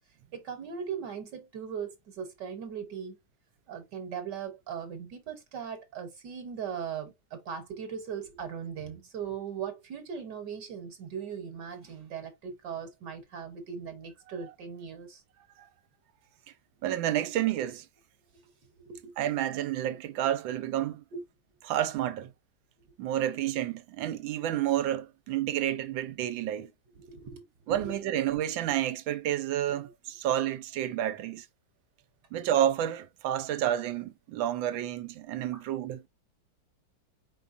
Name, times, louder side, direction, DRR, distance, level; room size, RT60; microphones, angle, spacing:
voice 1, 0.3-3.2 3.7-15.2 18.3-19.1 21.1-21.2 26.9-28.0 35.5-35.6, right 7 dB, 65° right, 1.6 m, -39 dB
voice 2, 16.8-17.9 19.2-21.0 21.7-22.3 23.0-26.7 27.7-31.5 32.3-36.0, right 11 dB, 80° right, 1.4 m, -30 dB
4.8 x 4.2 x 2.5 m
omnidirectional pair, 2.1 m